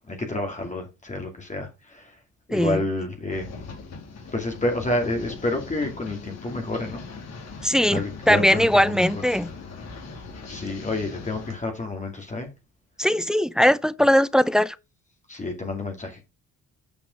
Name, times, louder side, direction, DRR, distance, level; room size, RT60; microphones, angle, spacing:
voice 1, 0.1-2.2 2.5-3.5 4.3-7.0 7.9-9.0 10.5-12.5 15.3-16.3, left 2 dB, 25° left, 2.4 m, -29 dB
voice 2, 2.5-2.8 7.6-9.5 13.0-14.8, equal, ahead, 0.6 m, -20 dB
sound 1, 3.3-11.6, left 4 dB, 60° left, 3.6 m, -40 dB
9.0 x 5.2 x 5.1 m
cardioid pair, 90°, 30 cm